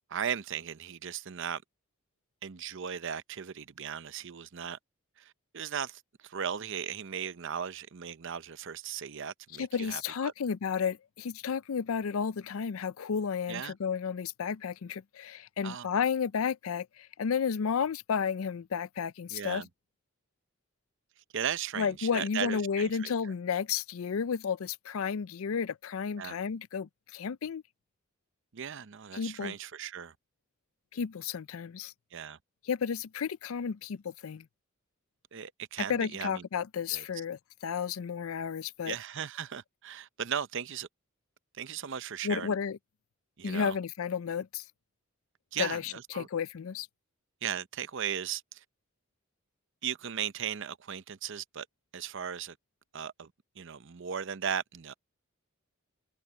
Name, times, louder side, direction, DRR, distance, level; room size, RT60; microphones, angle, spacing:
voice 1, 0.1-1.6 2.4-4.8 5.2-10.3 13.5-13.7 15.6-16.0 19.3-19.7 21.3-23.1 26.2-26.4 28.5-30.1 32.1-32.4 35.3-36.4 36.9-37.0 38.8-40.9 41.6-42.5 43.4-43.8 45.5-46.3 47.4-48.6 49.8-51.7 51.9-52.6 52.9-53.3 53.6-54.9, right 8 dB, 60° right, 0.7 m, -37 dB
voice 2, 9.6-19.6 21.8-27.6 29.1-29.5 30.9-31.9 32.6-34.4 35.9-38.9 42.2-42.8 43.4-44.6 45.6-46.9, left 6 dB, 75° left, 0.4 m, -32 dB
head